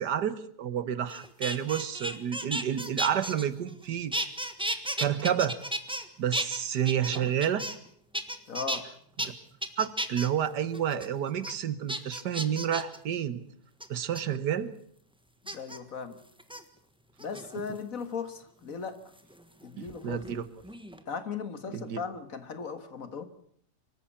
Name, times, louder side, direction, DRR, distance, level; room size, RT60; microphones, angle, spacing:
voice 1, 0.0-4.1 5.0-5.6 6.2-7.6 9.2-9.3 9.8-13.4 13.9-14.7 19.8-20.4 21.7-22.0, right 9 dB, 85° right, 15 dB, 1.8 m, -30 dB
sound 1, 1.1-3.8 4.1-6.0 6.3-7.9 8.1-8.8 9.2-9.3 9.6-10.3 10.7-11.1 11.4-11.5 11.9-13.0 13.8-14.2 15.5-15.8 16.4-16.6 17.2-17.8 19.2-20.4 20.6-21.0, right 1 dB, 5° right, 1.3 m, -34 dB
voice 2, 8.5-8.9 15.4-16.2 17.2-19.0 19.6-20.2 21.1-23.3, left 6 dB, 55° left, 10 dB, 2.1 m, -37 dB
24.5 x 14.5 x 8.6 m, 0.64 s
omnidirectional pair, 1.8 m